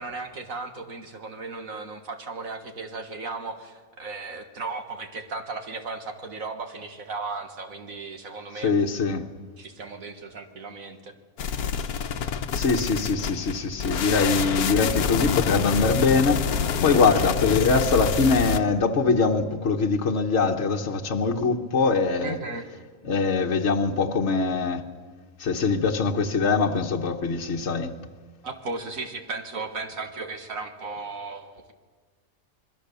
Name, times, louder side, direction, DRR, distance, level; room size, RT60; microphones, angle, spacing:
voice 1, 0.0-8.8 9.6-11.1 22.2-22.7 28.4-31.7, right 3 dB, 65° right, 5 dB, 1.9 m, -36 dB
voice 2, 8.6-9.2 12.5-22.4 23.0-24.8 25.4-28.0, left 4 dB, 55° left, 2 dB, 1.3 m, -23 dB
sound 1, 11.4-18.6, left 6 dB, 90° left, 1.4 m, -27 dB
27.0 x 21.0 x 6.9 m, 1.5 s
omnidirectional pair, 1.5 m